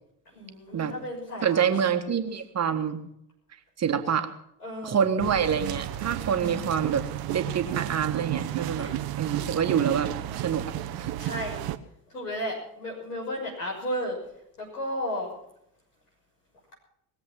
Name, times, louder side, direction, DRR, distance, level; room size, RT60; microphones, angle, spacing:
voice 1, 0.3-1.6 4.6-5.0 8.8-8.9 11.2-11.6 12.1-14.2 14.6-15.3, equal, 85° left, -3 dB, 6.4 m, -33 dB
voice 2, 1.4-3.0 3.8-4.3 4.8-7.0 7.3-8.9 9.2-10.1 10.4-10.6 10.9-11.1, right 7 dB, 35° right, 7 dB, 1.6 m, -26 dB
sound 1, 5.2-11.8, right 13 dB, 50° right, 1.0 m, -32 dB
21.0 x 7.8 x 7.4 m, 0.76 s
figure-of-eight pair, 55°, 45 cm